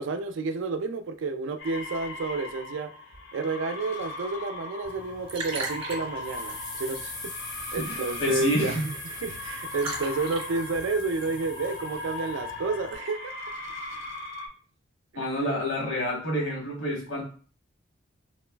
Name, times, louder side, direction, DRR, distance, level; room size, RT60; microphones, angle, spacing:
voice 1, 0.0-2.9 3.3-8.8 9.0-13.3 15.1-15.3, right 3 dB, 70° right, 8 dB, 0.3 m, -31 dB
sound 1, 1.6-14.5, left 2 dB, 70° left, 0.6 m, -39 dB
Liquid, 4.8-12.9, right 3 dB, 30° right, 0.6 m, -42 dB
sound 2, 6.2-12.4, left 3 dB, 20° left, 0.3 m, -41 dB
voice 2, 7.7-8.8 15.1-17.2, equal, 90° left, -1 dB, 1.1 m, -28 dB
3.1 x 2.3 x 2.2 m, 0.41 s
head